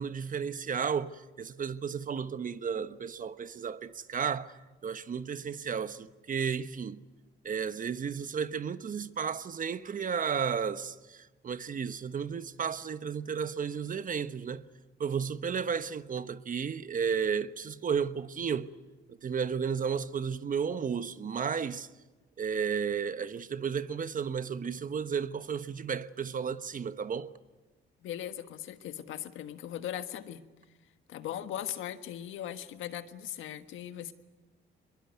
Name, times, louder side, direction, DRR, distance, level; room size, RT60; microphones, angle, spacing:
voice 1, 0.0-4.5 4.8-7.0 7.4-14.6 15.0-18.7 19.1-21.9 22.4-27.3, right 6 dB, 45° right, 1.1 m, -33 dB
voice 2, 28.0-30.4 31.1-34.1, left 11 dB, 85° left, 1.5 m, -39 dB
23.0 x 22.0 x 9.5 m
cardioid pair, 90°, 20 cm